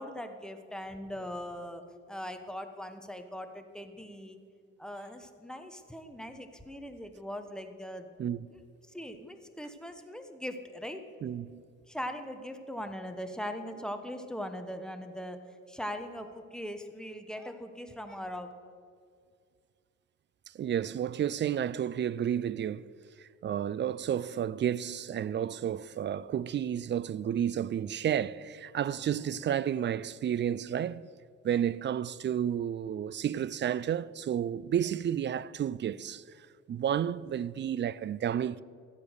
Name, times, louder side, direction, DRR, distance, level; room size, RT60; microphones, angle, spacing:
voice 1, 0.0-4.4 4.8-8.1 8.5-8.6 8.9-11.0 11.9-15.4 15.7-18.5, equal, ahead, 1.1 m, -40 dB
voice 2, 11.2-11.6 20.5-22.9 23.2-31.1 31.4-36.2 36.7-38.6, right 9 dB, 40° right, 0.4 m, -31 dB
14.0 x 8.5 x 6.4 m
cardioid pair, 90°, 30 cm